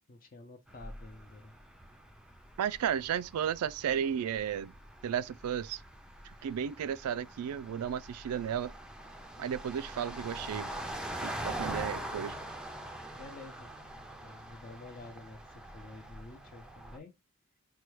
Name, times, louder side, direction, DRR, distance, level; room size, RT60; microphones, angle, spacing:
voice 1, 0.1-1.5 11.8-11.9 13.1-13.7 14.2-17.1, left 2 dB, 40° left, 0.6 m, -50 dB
sound 1, 0.7-17.0, right 1 dB, 5° right, 0.5 m, -44 dB
voice 2, 2.6-4.7 5.0-5.8 6.4-8.7 9.4-10.7 11.2-12.4, right 8 dB, 85° right, 0.3 m, -33 dB
4.5 x 2.3 x 3.1 m
head